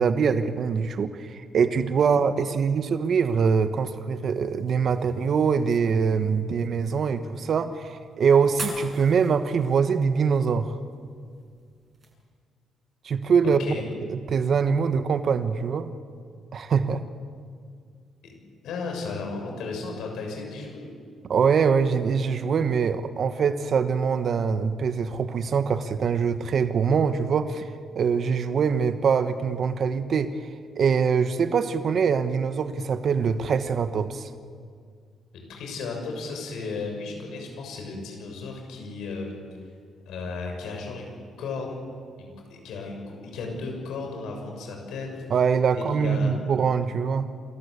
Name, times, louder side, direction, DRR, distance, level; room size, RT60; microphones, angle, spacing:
voice 1, 0.0-10.8 13.0-13.6 14.1-15.9 16.5-17.0 21.2-34.3 45.3-47.3, right 6 dB, 55° right, 10 dB, 1.2 m, -23 dB
sound 1, 3.7-12.1, right 3 dB, 40° right, 7.0 m, -45 dB
voice 2, 18.6-20.9 35.5-39.3 40.1-41.1 41.4-41.8 42.2-45.1 45.7-46.3, left 4 dB, 80° left, 1 dB, 6.5 m, -34 dB
28.5 x 14.0 x 8.4 m, 2.1 s
cardioid pair, 90°, 0 cm